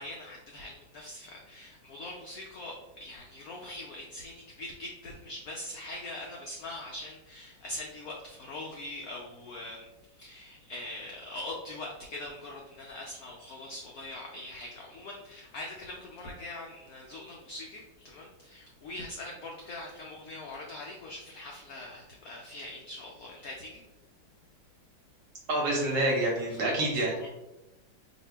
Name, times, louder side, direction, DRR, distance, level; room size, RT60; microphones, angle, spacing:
voice 1, 0.0-23.8 26.5-26.9 27.2-27.3, left 1 dB, 85° left, -1 dB, 0.8 m, -42 dB
voice 2, 25.5-27.1, right 1 dB, 65° right, -1 dB, 1.1 m, -27 dB
2.8 x 2.6 x 4.3 m, 0.96 s
omnidirectional pair, 2.2 m